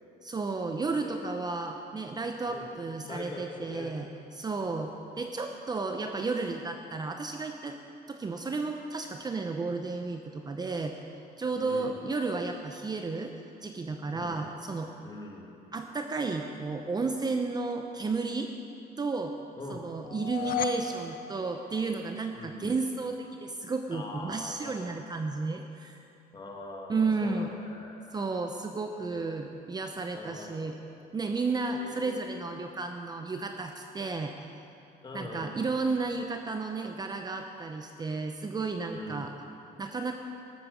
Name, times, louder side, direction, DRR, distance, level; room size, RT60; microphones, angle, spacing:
voice 1, 0.2-4.1 4.3-7.8 8.1-11.0 11.4-13.3 13.6-14.9 15.7-18.5 19.0-19.3 19.7-26.0 26.9-27.5 28.1-30.8 31.1-34.3 35.1-39.3 39.8-40.1, right 3 dB, 25° right, 4 dB, 0.7 m, -33 dB
voice 2, 0.9-1.2 2.5-2.7 3.0-4.0 4.6-5.0 11.6-12.0 14.1-14.5 15.0-15.5 19.6-19.9 22.3-22.8 23.9-24.9 26.3-28.3 29.0-29.5 30.1-30.7 31.7-32.3 35.0-35.8 38.9-39.3, left 2 dB, 25° left, -1 dB, 2.3 m, -43 dB
sound 1, 20.0-22.3, left 9 dB, 55° left, 0.6 m, -35 dB
13.5 x 8.6 x 6.6 m, 2.6 s
cardioid pair, 110°, 17 cm